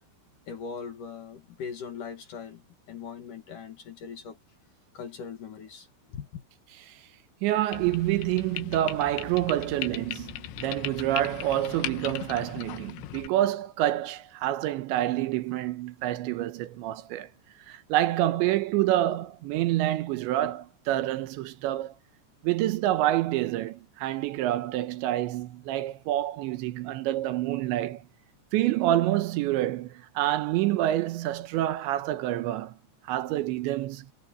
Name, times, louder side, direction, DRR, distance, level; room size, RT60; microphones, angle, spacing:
voice 1, 0.5-4.4 4.9-6.4, left 6 dB, 50° left, 3.0 m, -40 dB
voice 2, 7.4-17.3 17.7-21.9 22.4-28.0 28.5-32.7 33.0-34.1, right 14 dB, 80° right, 3.2 m, -27 dB
sound 1, 7.7-13.3, left 13 dB, 75° left, 3.2 m, -38 dB
omnidirectional pair, 5.4 m